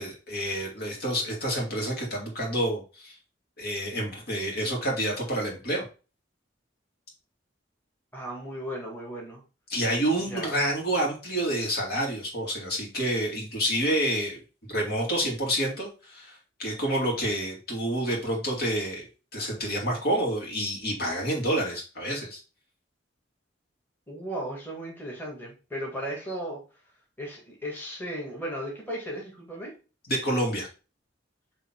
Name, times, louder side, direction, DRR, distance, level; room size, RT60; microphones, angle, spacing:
voice 1, 0.0-3.1 3.6-5.8 9.7-14.4 14.7-22.4 30.1-30.7, right 1 dB, 55° left, -1 dB, 2.5 m, -28 dB
voice 2, 8.1-9.4 10.3-10.5 24.1-26.6 27.2-29.8, equal, 10° left, -3 dB, 1.9 m, -36 dB
6.9 x 3.3 x 4.5 m, 0.33 s
head